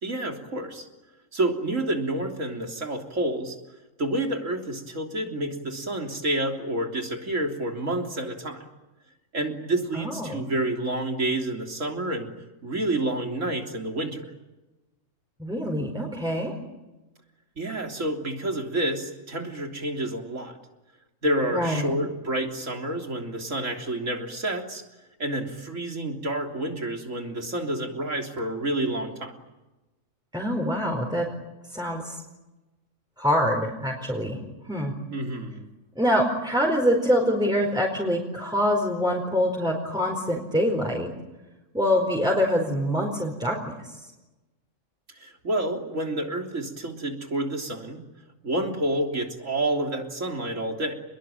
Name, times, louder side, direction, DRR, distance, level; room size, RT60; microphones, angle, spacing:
voice 1, 0.0-0.9 1.3-3.6 4.0-8.6 9.3-12.3 12.6-14.2 17.6-20.6 21.2-24.8 25.2-29.3 35.1-35.6 45.2-48.0 48.4-51.0, right 1 dB, 75° right, 3 dB, 3.8 m, -29 dB
voice 2, 9.9-10.5 15.4-16.5 21.5-21.9 30.3-31.3 31.7-32.2 33.2-34.4 34.6-34.9 35.9-41.1 41.7-43.9, equal, 5° right, -1 dB, 4.6 m, -25 dB
29.5 x 21.5 x 9.2 m, 1.0 s
omnidirectional pair, 1.3 m